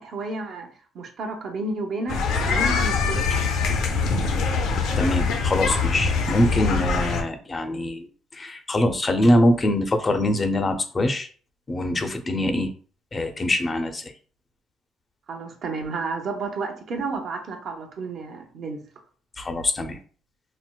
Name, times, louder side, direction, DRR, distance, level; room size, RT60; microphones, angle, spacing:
voice 1, 0.0-3.7 15.3-18.8, right 3 dB, 55° right, 4 dB, 0.7 m, -32 dB
sound 1, 2.1-7.2, left 4 dB, 80° left, 0.6 m, -23 dB
voice 2, 5.0-8.1 8.3-11.3 11.7-12.7 13.1-14.1 19.4-20.0, left 1 dB, 25° left, 6 dB, 0.5 m, -23 dB
4.2 x 2.0 x 2.2 m, 0.41 s
cardioid pair, 105°, 0 cm